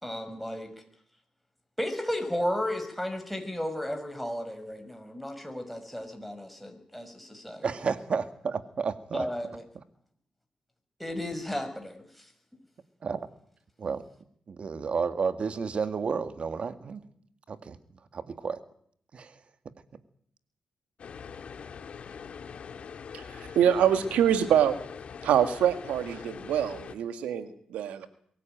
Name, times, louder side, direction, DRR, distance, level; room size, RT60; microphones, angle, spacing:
voice 1, 0.0-0.7 1.8-7.7 9.1-9.6 11.0-12.0, left 1 dB, ahead, 6 dB, 6.1 m, -34 dB
voice 2, 7.6-9.3 13.0-13.2 13.8-14.1 14.5-17.0 17.5-17.8 18.1-18.6 19.1-19.7, right 5 dB, 55° right, 10 dB, 2.0 m, -31 dB
sound 1, 21.0-27.0, left 6 dB, 65° left, 1.9 m, -43 dB
voice 3, 23.1-24.8 25.2-28.1, right 9 dB, 90° right, 10 dB, 1.7 m, -25 dB
23.0 x 15.5 x 9.2 m, 0.64 s
cardioid pair, 55°, 2 cm